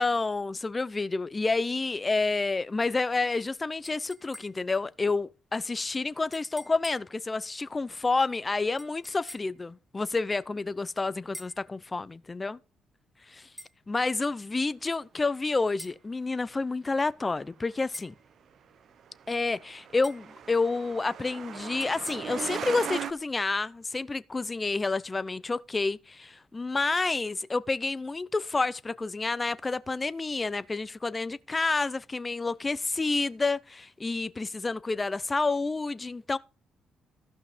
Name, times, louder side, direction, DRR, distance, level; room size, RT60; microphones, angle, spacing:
voice 1, 0.0-12.6 13.3-13.5 13.9-18.1 19.3-36.4, left 3 dB, 25° left, 0.7 m, -29 dB
Glass Knock Ding Cutlery Fork Dinner Pack, 3.8-4.8 6.3-7.2 8.8-9.6 11.3-11.7 13.6-13.8 15.8-16.0 17.9-18.2 20.0-20.3 21.8-22.1, left 1 dB, ahead, 2.3 m, -46 dB
Truck, 19.0-23.1, right 8 dB, 60° right, 0.8 m, -38 dB
15.0 x 5.7 x 5.1 m
cardioid pair, 90°, 0 cm